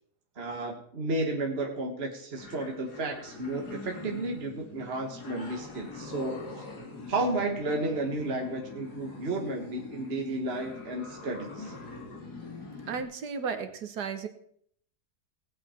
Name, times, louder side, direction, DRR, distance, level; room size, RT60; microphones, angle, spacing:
voice 1, 0.3-6.6 7.1-11.7, right 2 dB, 40° right, 2 dB, 1.5 m, -32 dB
sound 1, 2.4-13.0, left 3 dB, 80° left, 2.8 m, -43 dB
voice 2, 12.9-14.3, right 5 dB, 90° right, 8 dB, 1.8 m, -34 dB
18.0 x 8.3 x 4.3 m, 0.64 s
omnidirectional pair, 1.7 m